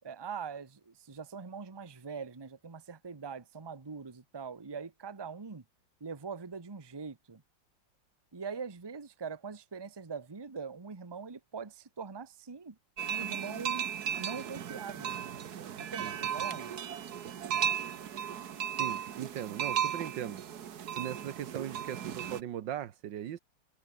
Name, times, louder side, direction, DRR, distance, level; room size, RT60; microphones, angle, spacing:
voice 1, 0.0-5.6 6.0-7.4 8.3-12.8 13.1-13.8 14.2-15.2 15.8-16.8, right 5 dB, 15° right, 0.9 m, -42 dB
sound 1, 13.0-22.4, right 9 dB, 60° right, 1.6 m, -35 dB
voice 2, 18.8-20.4 21.0-23.4, right 10 dB, 75° right, 1.7 m, -39 dB
omnidirectional pair, 2.0 m